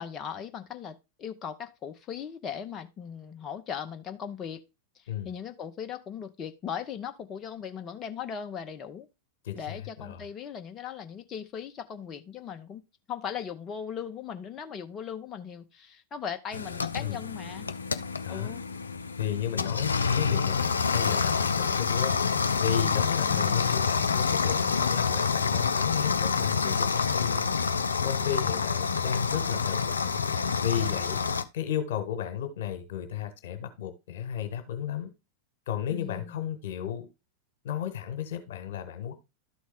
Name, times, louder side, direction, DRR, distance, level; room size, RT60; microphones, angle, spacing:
voice 1, 0.0-4.6 4.9-9.1 9.5-12.8 13.1-17.7 18.3-18.7 28.2-28.5 35.9-36.4, left 8 dB, 25° left, 0.8 m, -38 dB
voice 2, 9.4-10.2 17.0-17.2 18.2-18.5 19.2-22.2 22.5-27.5 28.0-30.2 30.6-31.2 31.5-35.1 35.7-37.1 37.6-39.1, left 9 dB, 55° left, 1.5 m, -33 dB
sound 1, 16.5-31.4, left 5 dB, 75° left, 0.5 m, -27 dB
12.5 x 4.2 x 3.6 m
figure-of-eight pair, 90°, 0 cm